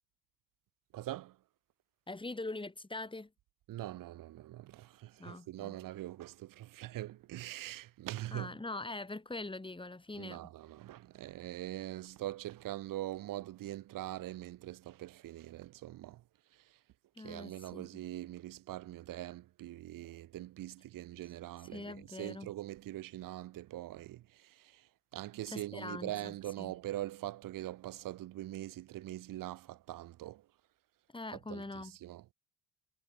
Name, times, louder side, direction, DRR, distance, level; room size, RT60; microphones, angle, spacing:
voice 1, 0.9-1.3 3.7-8.5 10.2-16.2 17.2-24.8 25.1-30.4 31.5-32.2, right 15 dB, 60° right, 3.3 m, -43 dB
voice 2, 2.1-3.3 5.2-5.8 8.3-10.4 17.2-17.9 21.7-22.5 25.5-26.7 31.1-32.0, left 2 dB, 15° left, 6.9 m, -43 dB
hypercardioid pair, 70°, 36 cm